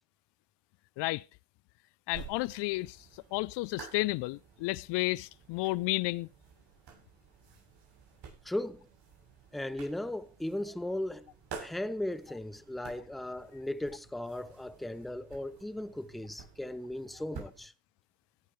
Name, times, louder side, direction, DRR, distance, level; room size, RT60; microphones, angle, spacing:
voice 1, 2.1-6.3, left 21 dB, 60° left, 0.5 m, -32 dB
sound 1, 2.1-17.7, right 6 dB, 55° right, 7.7 m, -51 dB
voice 2, 8.4-8.9 9.5-11.3 11.6-17.7, left 1 dB, ahead, 0.7 m, -37 dB
16.5 x 11.0 x 3.1 m
supercardioid pair, 90°, 47 cm